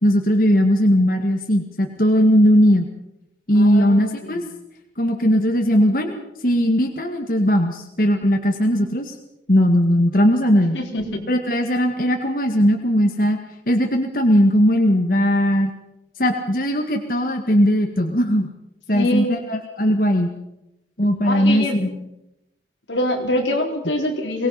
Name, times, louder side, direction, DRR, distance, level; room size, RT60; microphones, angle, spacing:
voice 1, 0.0-2.9 3.5-4.5 5.0-6.2 6.4-9.1 9.5-10.8 11.3-13.4 13.7-15.7 16.2-18.5 18.9-20.3 21.0-22.1, equal, 50° left, 3 dB, 1.8 m, -18 dB
voice 2, 3.5-4.4 10.7-11.3 18.9-19.4 21.2-21.8 22.9-24.5, left 1 dB, 85° left, 2 dB, 4.0 m, -24 dB
23.5 x 19.5 x 5.7 m, 0.88 s
head